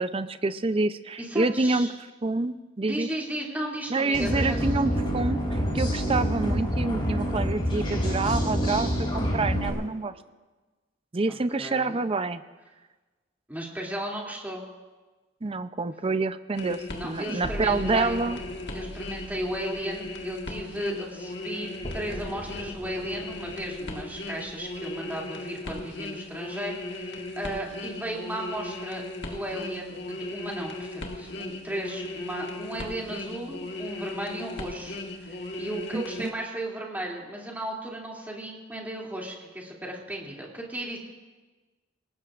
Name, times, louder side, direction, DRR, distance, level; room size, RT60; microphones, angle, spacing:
voice 1, 0.0-1.9 2.2-3.1 3.9-5.4 5.7-10.1 11.1-12.4 15.4-18.4 35.9-36.3, right 3 dB, 30° right, 12 dB, 0.5 m, -27 dB
voice 2, 1.2-1.9 2.8-4.6 11.3-12.0 13.5-14.6 16.9-18.2 18.7-41.0, right 1 dB, 10° right, -3 dB, 2.7 m, -35 dB
sound 1, 4.1-9.7, equal, 25° left, 4.3 m, -27 dB
sound 2, 16.5-36.3, left 2 dB, 65° left, 1.6 m, -37 dB
sound 3, 17.4-21.4 21.8-25.2, equal, 45° left, 2.8 m, -41 dB
26.5 x 18.0 x 2.5 m, 1.3 s
head